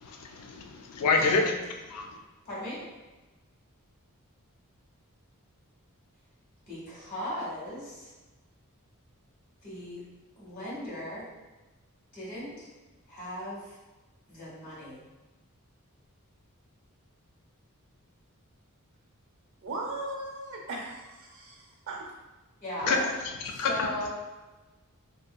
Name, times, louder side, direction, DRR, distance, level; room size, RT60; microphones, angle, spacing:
voice 1, 0.0-1.4 1.9-2.1 22.9-23.0 23.6-23.9, left 4 dB, 85° left, 2 dB, 0.3 m, -27 dB
voice 2, 1.1-1.6 2.4-2.8 6.7-8.1 9.6-10.0 10.4-11.2 12.1-12.7 13.1-13.8 14.3-15.0 22.6-22.9 23.5-24.1, left 1 dB, 40° left, -7 dB, 1.2 m, -38 dB
voice 3, 19.6-22.1 22.8-23.2, right 2 dB, 65° right, -1 dB, 0.6 m, -37 dB
2.7 x 2.6 x 2.3 m, 1.2 s
head